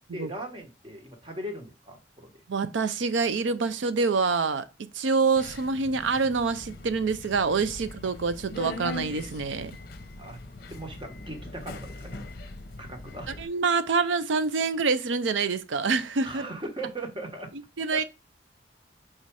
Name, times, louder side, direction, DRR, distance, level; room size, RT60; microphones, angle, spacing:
voice 1, 0.1-2.4 10.2-10.4 10.7-12.2 12.8-13.4 16.2-17.5 17.9-18.0, right 1 dB, 25° right, 1.2 m, -39 dB
voice 2, 2.5-4.7 4.9-9.7 13.4-16.5 17.8-18.0, right 4 dB, 90° right, 0.5 m, -26 dB
Subway metro underground, 5.4-13.5, left 2 dB, 55° left, 0.7 m, -41 dB
4.9 x 4.1 x 4.7 m
head